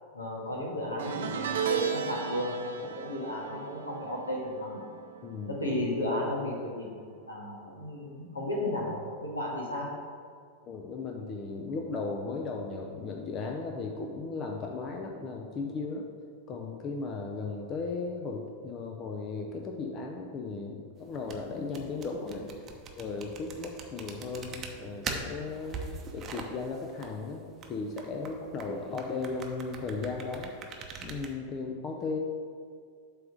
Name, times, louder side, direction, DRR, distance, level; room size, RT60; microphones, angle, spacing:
voice 1, 0.1-2.5 2.8-4.8 5.5-6.9 7.3-9.9, left 1 dB, 75° left, -3 dB, 1.8 m, -33 dB
sound 1, 1.0-6.4 6.6-7.0 8.3-8.4, right 8 dB, 60° right, 0.6 m, -36 dB
voice 2, 5.2-5.6 10.6-16.1 16.5-22.6 23.0-25.8 26.1-30.5 31.0-32.2, left 4 dB, 30° left, 2 dB, 0.7 m, -36 dB
sound 2, 21.0-31.3, right 5 dB, 30° right, 0.8 m, -42 dB
7.7 x 3.7 x 6.2 m, 2.1 s
figure-of-eight pair, 90°, 0 cm